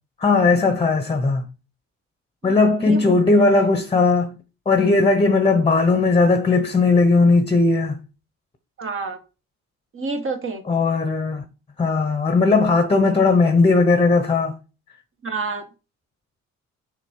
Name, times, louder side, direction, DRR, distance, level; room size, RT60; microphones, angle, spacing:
voice 1, 0.2-1.4 2.4-4.3 4.7-8.0 10.7-11.4 11.8-14.6, left 3 dB, 20° left, 0.9 m, -17 dB
voice 2, 2.4-3.1 3.5-3.7 8.8-9.2 9.9-10.6 15.2-15.6, right 3 dB, 45° right, 1.6 m, -29 dB
6.4 x 3.7 x 5.4 m
cardioid pair, 90°, 30 cm